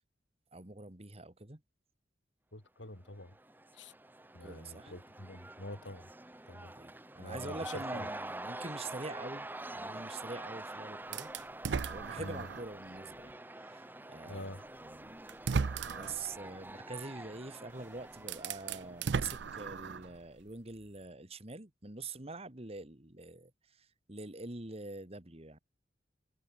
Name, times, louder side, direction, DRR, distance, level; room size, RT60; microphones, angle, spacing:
voice 1, 0.5-1.6 4.4-4.9 6.7-9.5 9.7-11.3 11.9-15.2 15.8-25.6, right 3 dB, 35° right, 2.1 m, -45 dB
voice 2, 2.5-3.3 3.7-3.9 4.3-6.1 6.5-6.7 7.2-8.1 12.2-12.4 14.3-14.6, left 1 dB, 90° left, 4.2 m, -46 dB
Cheering / Crowd, 3.1-19.9, right 2 dB, 10° right, 1.5 m, -46 dB
sound 1, 11.1-12.7 13.3-13.4 14.6-14.7 15.3-16.3 17.7-17.8 18.2-20.2, right 5 dB, 70° right, 0.5 m, -36 dB
head